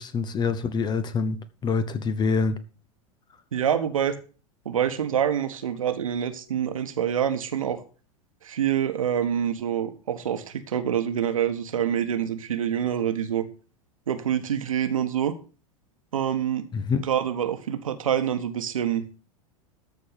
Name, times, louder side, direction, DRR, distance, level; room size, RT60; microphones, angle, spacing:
voice 1, 0.0-2.6 16.7-17.0, left 5 dB, 25° left, 1.0 m, -26 dB
voice 2, 3.5-4.1 4.6-7.8 8.4-13.4 14.1-15.3 16.1-16.7 17.0-19.2, right 9 dB, 70° right, 1.3 m, -26 dB
13.5 x 4.8 x 6.7 m
figure-of-eight pair, 85°, 18 cm